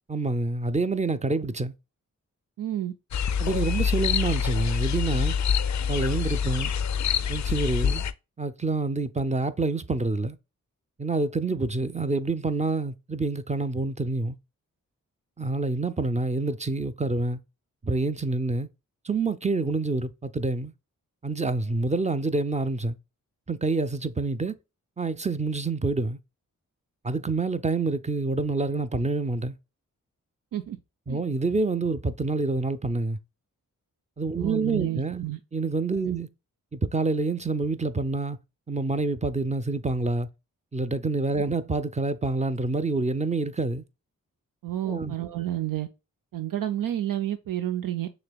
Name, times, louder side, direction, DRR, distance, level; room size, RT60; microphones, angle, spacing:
voice 1, 0.1-1.7 3.4-5.3 5.9-6.7 7.3-8.0 8.4-10.4 11.0-14.4 15.4-17.4 17.8-18.7 19.0-20.7 21.2-22.9 23.5-24.6 25.0-26.2 27.0-29.6 31.1-33.2 34.2-36.3 36.7-38.4 38.7-40.3 40.7-43.8 44.9-45.1, right 3 dB, 20° right, 0.5 m, -27 dB
voice 2, 2.6-2.9 30.5-30.8 31.1-31.2 34.4-35.4 36.0-36.2 44.6-45.9 46.3-48.1, right 12 dB, 75° right, 0.5 m, -30 dB
sound 1, 3.1-8.1, left 7 dB, 60° left, 0.5 m, -26 dB
6.5 x 3.0 x 2.3 m
cardioid pair, 55°, 34 cm